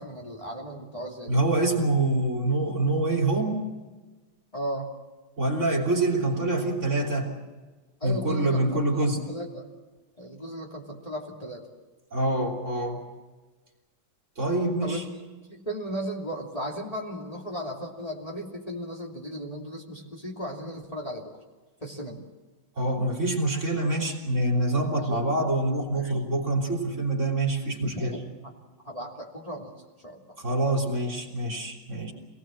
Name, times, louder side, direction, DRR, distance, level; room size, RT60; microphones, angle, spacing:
voice 1, 0.0-1.4 4.5-4.9 8.0-9.7 10.2-11.7 14.8-15.0 15.5-21.4 21.8-22.2 24.9-25.2 25.9-26.2 27.8-28.5 28.8-30.2, equal, 20° left, -2 dB, 3.0 m, -36 dB
voice 2, 1.3-3.7 5.4-7.3 8.0-9.2 12.1-13.0 14.4-15.0 22.8-28.2 30.4-32.1, right 2 dB, 40° right, 0 dB, 3.6 m, -26 dB
26.5 x 19.0 x 7.6 m, 1.3 s
omnidirectional pair, 2.0 m